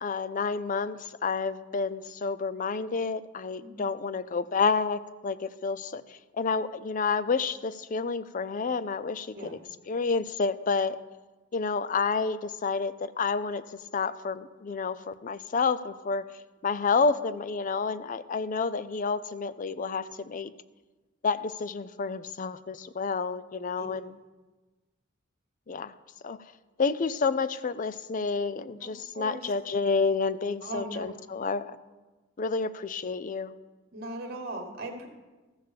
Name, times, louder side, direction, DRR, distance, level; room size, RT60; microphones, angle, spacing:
voice 1, 0.0-9.6 9.9-11.0 11.5-13.6 13.9-16.3 16.6-20.5 21.2-24.1 25.7-25.9 26.2-26.4 26.8-31.8 32.4-33.5, left 4 dB, 40° left, 15 dB, 0.4 m, -29 dB
voice 2, 28.8-29.5 30.6-31.1 33.9-35.1, right 1 dB, 50° right, 3 dB, 1.9 m, -39 dB
14.5 x 6.7 x 6.8 m, 1.2 s
head